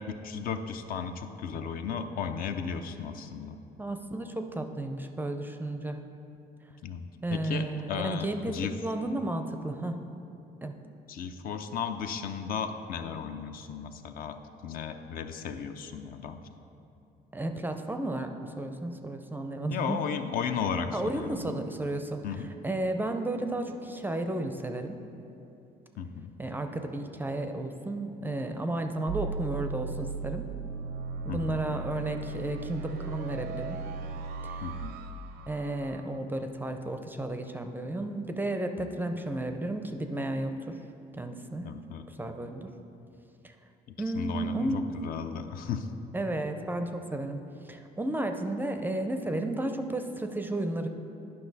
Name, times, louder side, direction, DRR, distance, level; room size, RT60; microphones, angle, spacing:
voice 1, 0.1-3.6 6.8-7.0 7.3-8.7 11.1-16.4 19.7-21.6 22.2-22.5 26.0-26.3 31.3-31.6 34.6-35.0 38.8-39.0 41.6-42.1 44.1-45.9, left 7 dB, 60° left, 7 dB, 0.5 m, -35 dB
voice 2, 3.8-6.0 7.2-10.0 10.6-10.7 17.3-20.0 20.9-22.2 22.6-25.0 26.4-30.5 31.2-33.8 34.4-34.7 35.5-40.8 41.1-41.7 42.1-42.7 43.4-43.5 44.0-44.8 46.1-50.9, right 1 dB, 10° right, 6 dB, 0.4 m, -33 dB
Sci-Fi FX Compilation, 29.1-36.0, right 4 dB, 80° right, 0.6 m, -37 dB
10.5 x 5.6 x 4.0 m, 2.8 s
cardioid pair, 110°, 17 cm